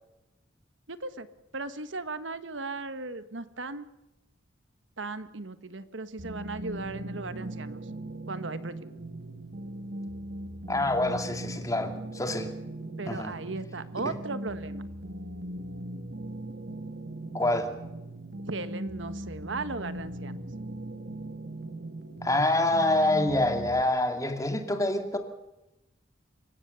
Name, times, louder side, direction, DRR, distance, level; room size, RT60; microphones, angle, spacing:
voice 1, 0.9-1.3 1.5-3.9 5.0-7.9 8.3-8.8 13.0-14.8 18.5-20.4, right 3 dB, 90° right, 12 dB, 1.4 m, -37 dB
sound 1, 6.2-23.8, right 1 dB, 60° right, 1.7 m, -39 dB
voice 2, 10.7-12.5 13.1-13.3 14.0-14.1 17.3-17.7 22.2-25.2, left 1 dB, 20° left, 6 dB, 2.4 m, -26 dB
27.5 x 16.0 x 7.0 m, 0.93 s
head